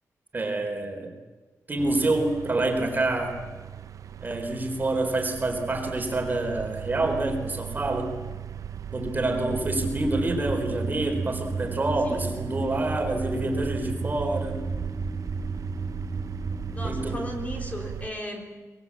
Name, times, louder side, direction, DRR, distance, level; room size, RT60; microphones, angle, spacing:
voice 1, 0.3-1.1 1.7-3.4 4.2-8.2 8.9-14.6 16.8-17.2, right 2 dB, 30° right, 3 dB, 4.1 m, -27 dB
sound 1, 1.8-18.1, right 8 dB, 65° right, 0.7 m, -37 dB
sound 2, 9.5-17.1, right 2 dB, 5° left, 5.5 m, -34 dB
voice 2, 16.7-18.7, left 1 dB, 25° left, 1 dB, 3.9 m, -36 dB
24.0 x 22.5 x 8.5 m, 1.3 s
wide cardioid pair, 135°, 6 cm